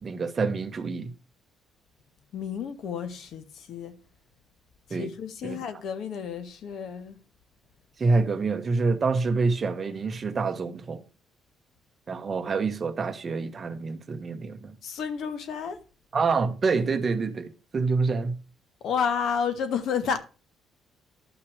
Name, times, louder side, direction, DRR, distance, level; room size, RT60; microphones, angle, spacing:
voice 1, 0.0-1.1 4.9-5.1 5.4-5.6 8.0-11.0 12.1-14.7 16.1-18.4, right 4 dB, 25° right, 0.9 m, -27 dB
voice 2, 2.3-4.0 5.0-7.2 14.8-15.8 18.8-20.2, left 7 dB, 55° left, 1.3 m, -31 dB
12.0 x 5.8 x 4.8 m
cardioid pair, 180°, 0 cm